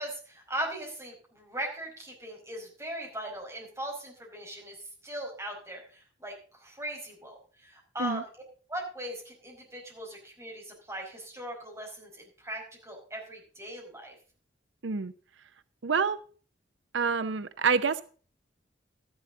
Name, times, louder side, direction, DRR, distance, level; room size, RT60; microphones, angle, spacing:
voice 1, 0.0-8.2 8.7-14.1, right 1 dB, 15° right, -1 dB, 5.0 m, -39 dB
voice 2, 15.8-16.2 16.9-18.0, right 5 dB, 85° right, 13 dB, 0.7 m, -27 dB
13.0 x 11.0 x 3.7 m, 0.41 s
head